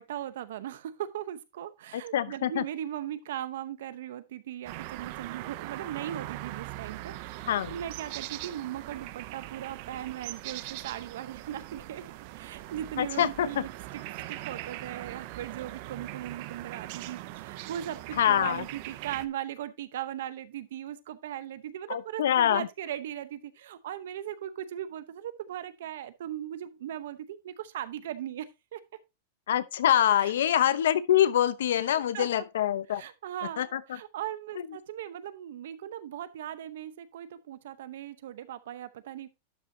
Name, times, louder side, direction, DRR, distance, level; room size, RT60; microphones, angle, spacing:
voice 1, 0.0-12.0 12.4-14.0 14.3-28.8 30.2-30.3 32.1-32.4 32.9-39.3, right 11 dB, 70° right, 0.8 m, -38 dB
voice 2, 1.9-2.6 7.5-7.8 13.0-13.6 18.1-18.6 21.9-22.7 29.5-33.0 33.6-34.0 34.5-34.7, left 11 dB, 80° left, 0.7 m, -25 dB
sound 1, 4.6-19.3, right 17 dB, 40° right, 0.5 m, -41 dB
11.5 x 5.7 x 2.7 m
supercardioid pair, 170°, 0 cm